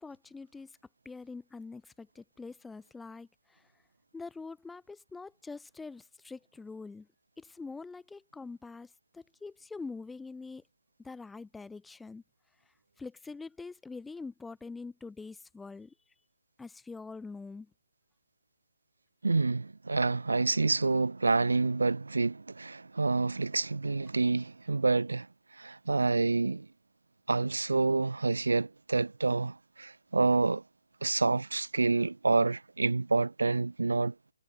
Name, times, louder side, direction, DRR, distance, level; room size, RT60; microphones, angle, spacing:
voice 1, 0.0-0.8 1.0-3.7 4.1-7.1 7.4-10.6 11.0-12.2 13.0-15.9 16.6-17.7, left 4 dB, 5° left, 1.6 m, -44 dB
voice 2, 19.2-25.3 25.6-26.7 27.3-30.6 31.0-34.3, right 3 dB, 70° right, 1.2 m, -28 dB
figure-of-eight pair, 140°, 0 cm